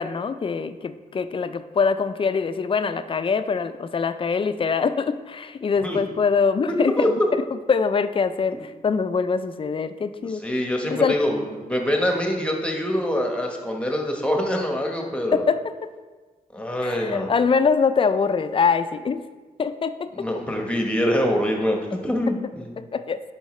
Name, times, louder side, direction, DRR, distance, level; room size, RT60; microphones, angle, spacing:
voice 1, 0.0-10.4 10.9-11.2 15.3-15.9 16.8-19.2 19.6-20.3 22.3-22.4 22.8-23.2, left 5 dB, 35° left, 11 dB, 0.4 m, -23 dB
voice 2, 7.0-7.3 10.4-15.4 16.5-17.3 20.1-22.7, equal, 5° left, 1 dB, 1.2 m, -24 dB
10.0 x 5.7 x 3.2 m, 1.3 s
wide cardioid pair, 105°, 15 cm